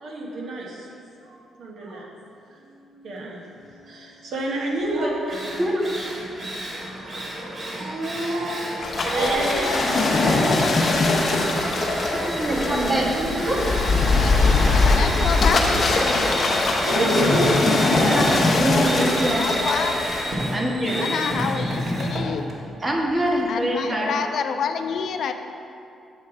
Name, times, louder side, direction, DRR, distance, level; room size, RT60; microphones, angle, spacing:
voice 1, 0.0-0.9 1.6-2.1 2.9-5.4 6.7-13.7 16.6-18.8, right 1 dB, 70° right, -3 dB, 1.1 m, -29 dB
Drill, 4.8-4.9 5.3-23.4, equal, 50° right, 1.4 m, -30 dB
sound 1, 8.8-20.2, left 3 dB, 55° left, 0.8 m, -21 dB
voice 2, 12.1-13.1 13.4-13.6 18.1-19.4 20.5-21.1 22.8-24.1 25.0-25.3, right 1 dB, 30° right, -1 dB, 1.3 m, -25 dB
voice 3, 14.6-15.6 19.3-20.0 21.0-22.5 23.5-25.3, left 6 dB, 70° left, 7 dB, 0.3 m, -28 dB
7.9 x 3.2 x 4.9 m, 2.6 s
supercardioid pair, 50°, 0 cm